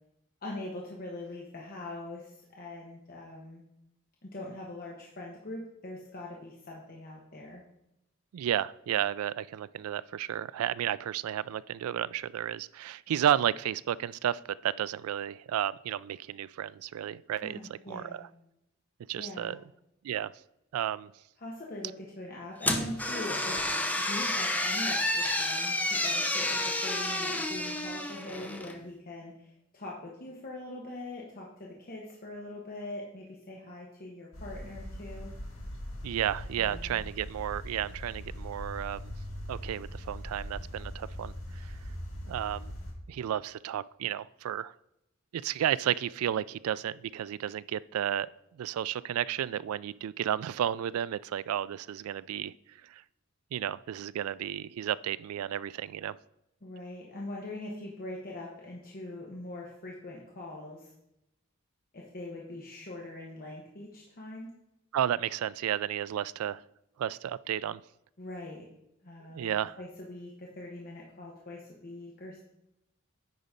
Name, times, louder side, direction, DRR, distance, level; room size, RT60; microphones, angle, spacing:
voice 1, 0.4-3.6 4.2-7.6 17.4-18.3 19.2-19.6 21.4-23.6 24.0-35.3 36.6-37.0 56.6-60.9 61.9-64.5 68.2-68.7 69.0-69.5 69.7-72.4, left 1 dB, 45° left, -3 dB, 1.2 m, -42 dB
voice 2, 8.3-18.3 19.1-19.6 20.0-20.3 20.7-21.1 36.0-39.1 39.5-41.7 42.3-42.7 43.1-44.7 45.3-48.3 48.6-52.5 52.8-53.0 53.5-56.2 64.9-66.6 67.0-67.8 69.3-69.8, right 10 dB, 85° right, 19 dB, 0.3 m, -32 dB
sound 1, 22.6-28.8, left 1 dB, 10° left, 0.7 m, -30 dB
sound 2, 34.3-42.9, equal, 70° left, 2.4 m, -41 dB
9.6 x 4.1 x 5.1 m, 0.85 s
head